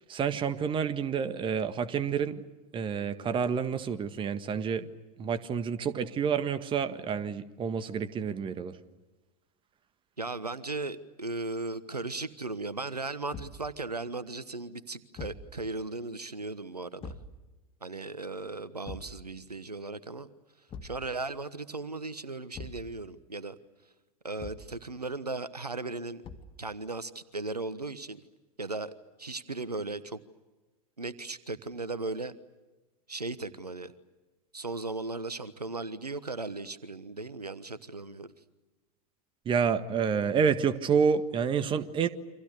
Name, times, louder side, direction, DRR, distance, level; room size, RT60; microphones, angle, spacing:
voice 1, 0.1-2.4 2.7-4.9 5.2-8.8 39.4-42.1, right 6 dB, 25° right, 10 dB, 1.7 m, -29 dB
voice 2, 10.2-17.1 17.8-20.3 20.8-23.6 24.2-26.2 26.6-28.2 28.6-28.9 29.2-30.2 31.0-32.3 33.1-33.9 34.5-38.3, right 3 dB, 90° right, 15 dB, 1.2 m, -37 dB
Thump thud, 13.3-13.7 15.1-15.5 17.0-17.3 18.8-19.2 20.7-21.0 22.5-22.9 24.4-24.7 26.2-26.6, left 4 dB, 30° left, 2.4 m, -42 dB
29.5 x 26.0 x 6.7 m, 1.1 s
figure-of-eight pair, 90°, 20 cm